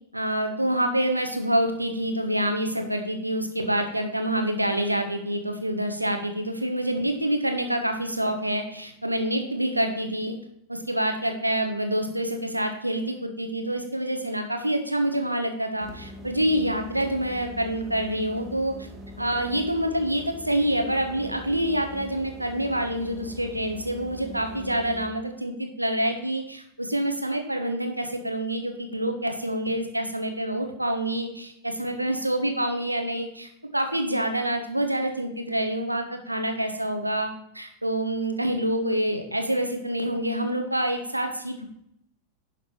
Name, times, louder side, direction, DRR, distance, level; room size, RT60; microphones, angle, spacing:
voice 1, 0.1-10.4 10.7-18.9 19.2-41.7, right 1 dB, 85° right, 5 dB, 1.2 m, -27 dB
sound 1, 15.8-25.1, left 2 dB, 20° right, 2.0 m, -43 dB
11.0 x 5.9 x 4.4 m, 0.74 s
figure-of-eight pair, 90°, 0 cm